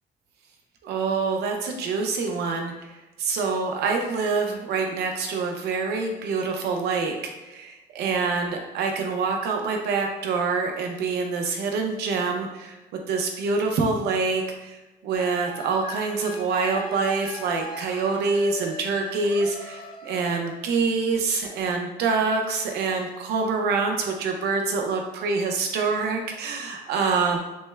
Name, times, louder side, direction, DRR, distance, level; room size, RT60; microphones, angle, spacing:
voice 1, 0.8-12.8 13.1-14.8 15.0-27.4, right 4 dB, 75° right, 3 dB, 0.7 m, -26 dB
sound 1, 15.1-20.7, left 1 dB, 30° left, 0.5 m, -40 dB
6.2 x 2.1 x 2.3 m, 1.1 s
cardioid pair, 110°, 17 cm